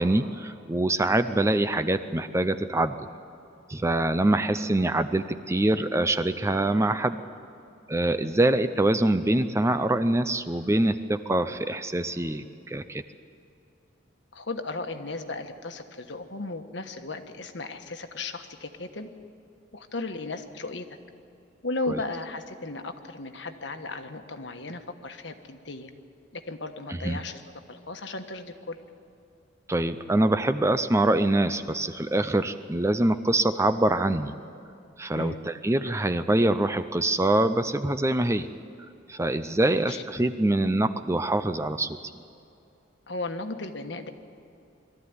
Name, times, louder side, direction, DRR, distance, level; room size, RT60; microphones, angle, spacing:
voice 1, 0.0-3.0 3.7-7.2 7.9-13.0 21.9-22.0 27.0-27.2 29.7-34.3 35.0-38.5 39.1-42.0, right 1 dB, 15° right, 10 dB, 0.5 m, -24 dB
voice 2, 14.3-19.1 19.7-20.9 21.6-25.9 26.3-27.4 27.7-28.8 35.2-35.4 39.8-40.0 43.1-44.1, left 3 dB, 65° left, 7 dB, 1.3 m, -35 dB
22.5 x 14.0 x 9.6 m, 2.6 s
head